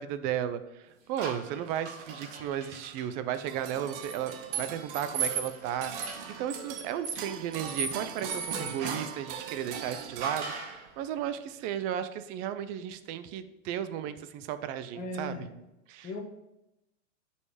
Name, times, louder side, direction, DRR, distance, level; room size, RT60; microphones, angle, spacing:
voice 1, 0.0-15.5 15.9-16.1, right 10 dB, 20° right, 12 dB, 0.4 m, -35 dB
sound 1, 1.2-3.0 4.0-9.2 10.2-10.8, right 5 dB, 60° right, 2.8 m, -37 dB
sound 2, 3.3-11.0, right 7 dB, 45° right, 1.1 m, -41 dB
voice 2, 15.0-15.5 16.0-16.2, left 2 dB, 20° left, -1 dB, 1.4 m, -38 dB
9.7 x 5.5 x 4.9 m, 0.92 s
supercardioid pair, 140°, 40 cm